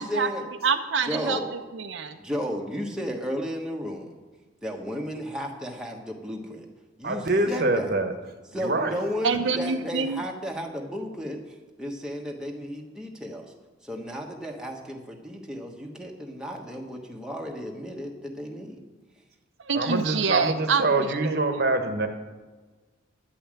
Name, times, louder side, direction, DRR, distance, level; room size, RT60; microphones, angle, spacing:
voice 1, 0.0-0.4 1.1-1.5 2.2-4.2 4.6-6.7 7.0-7.9 8.5-11.4 11.8-13.5 13.8-18.8, equal, 5° right, 0 dB, 1.2 m, -33 dB
voice 2, 0.6-2.2 9.2-10.2 19.6-21.4, right 5 dB, 75° right, 6 dB, 0.7 m, -26 dB
voice 3, 7.0-8.1 8.6-8.9 19.7-22.1, right 2 dB, 50° right, 7 dB, 1.1 m, -25 dB
12.0 x 5.7 x 8.8 m, 1.3 s
head